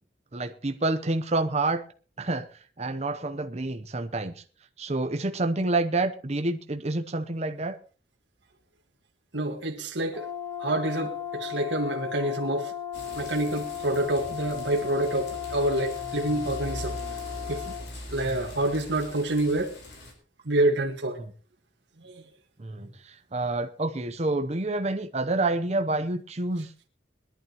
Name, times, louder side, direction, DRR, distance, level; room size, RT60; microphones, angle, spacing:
voice 1, 0.3-1.8 2.2-4.4 4.8-7.8 18.3-18.5 21.2-21.3 22.6-26.7, right 2 dB, 35° right, 0.8 m, -28 dB
voice 2, 9.3-10.3 10.6-12.7 13.1-17.0 17.5-17.7 18.1-19.7 20.4-21.2 22.0-22.2, right 1 dB, 80° right, 1.7 m, -27 dB
Brass instrument, 10.1-17.8, left 10 dB, 15° left, 1.8 m, -36 dB
sound 1, 12.9-20.1, left 1 dB, 65° left, 4.4 m, -41 dB
21.5 x 11.5 x 3.0 m
head